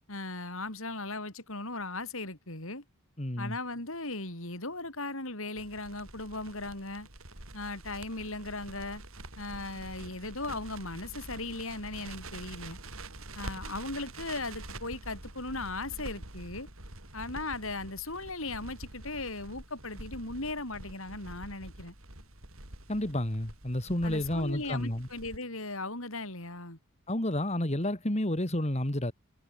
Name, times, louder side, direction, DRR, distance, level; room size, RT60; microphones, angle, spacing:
voice 1, 0.1-2.8 3.4-7.1 7.5-9.0 9.4-12.8 13.3-16.7 17.1-21.9 24.0-26.8, left 2 dB, 65° left, 7.8 m, -37 dB
voice 2, 3.2-3.6 22.9-25.1 27.1-29.1, left 1 dB, 30° left, 2.5 m, -30 dB
Crackle, 5.5-25.4, right 2 dB, 65° right, 7.7 m, -46 dB
head